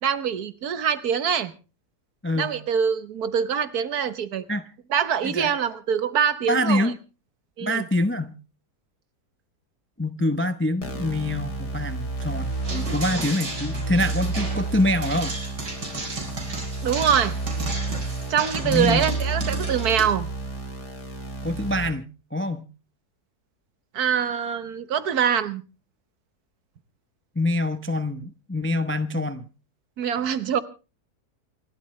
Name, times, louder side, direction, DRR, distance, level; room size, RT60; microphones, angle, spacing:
voice 1, 0.0-1.5 2.3-4.4 4.9-6.9 7.6-7.8 16.8-17.4 18.3-20.3 23.9-25.6 30.0-30.6, right 8 dB, 70° right, 1.6 m, -24 dB
voice 2, 2.2-2.6 4.5-4.7 5.2-5.5 6.5-7.0 7.6-8.3 10.0-15.4 18.6-19.1 21.4-22.6 27.4-29.5, left 1 dB, 15° left, 0.4 m, -25 dB
sound 1, 10.8-21.9, right 3 dB, 80° left, 4.2 m, -31 dB
sound 2, 12.6-20.0, right 2 dB, 85° right, 4.9 m, -33 dB
28.0 x 12.5 x 3.2 m
omnidirectional pair, 1.7 m